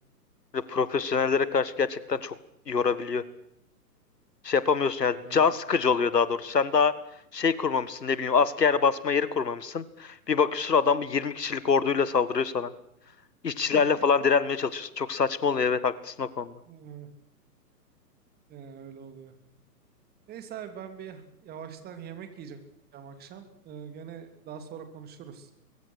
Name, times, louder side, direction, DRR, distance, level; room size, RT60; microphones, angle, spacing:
voice 1, 0.5-2.3 2.7-3.2 4.4-7.0 7.3-12.7 13.4-16.5, left 5 dB, 75° left, 16 dB, 1.9 m, -25 dB
voice 2, 13.5-14.0 16.7-17.1 18.5-19.3 20.3-22.6 22.9-25.5, right 8 dB, 20° right, 8 dB, 3.1 m, -43 dB
23.5 x 23.0 x 6.4 m, 0.76 s
figure-of-eight pair, 125°, 49 cm